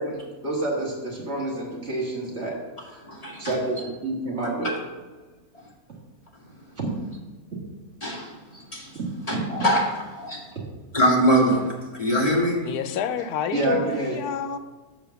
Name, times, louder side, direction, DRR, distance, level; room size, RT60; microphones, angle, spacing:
voice 1, 0.0-2.6 3.4-4.7 6.8-6.9 9.0-9.1 9.3-9.4 13.5-14.2, right 2 dB, 45° right, 2.1 m, -28 dB
voice 2, 3.0-3.8 4.6-4.8 8.0-9.0 9.3-10.4 10.9-12.7, equal, 25° left, 2.0 m, -24 dB
voice 3, 12.6-14.6, left 8 dB, 90° left, 1.2 m, -28 dB
7.2 x 5.1 x 6.9 m
omnidirectional pair, 1.6 m